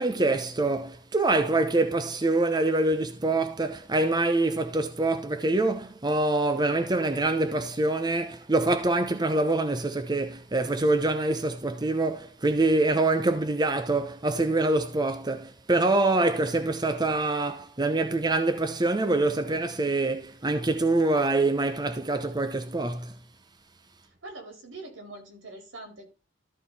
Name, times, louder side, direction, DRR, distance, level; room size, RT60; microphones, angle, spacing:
voice 1, 0.0-23.1, right 2 dB, 20° right, 0.8 m, -25 dB
voice 2, 24.0-26.1, right 2 dB, 85° right, 4.3 m, -43 dB
13.5 x 5.0 x 4.1 m
head